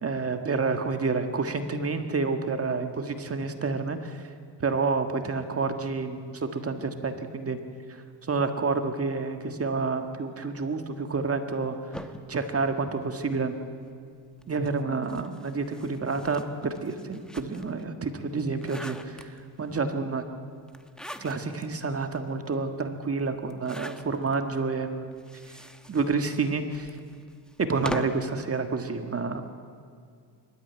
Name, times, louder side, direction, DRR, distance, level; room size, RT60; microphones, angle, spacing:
voice 1, 0.0-4.2 4.6-7.6 8.3-11.8 12.3-13.5 14.5-16.4 16.8-20.2 21.2-25.1 25.9-26.9 27.7-29.4, right 4 dB, 30° right, 7 dB, 1.6 m, -29 dB
sound 1, 11.9-13.5 14.4-17.8 18.3-19.7 20.7-21.7 22.1-22.2 22.5-22.6 23.4-24.4 25.1-28.3, equal, ahead, 1.1 m, -42 dB
24.5 x 13.0 x 9.4 m, 2.3 s
cardioid pair, 110°, 47 cm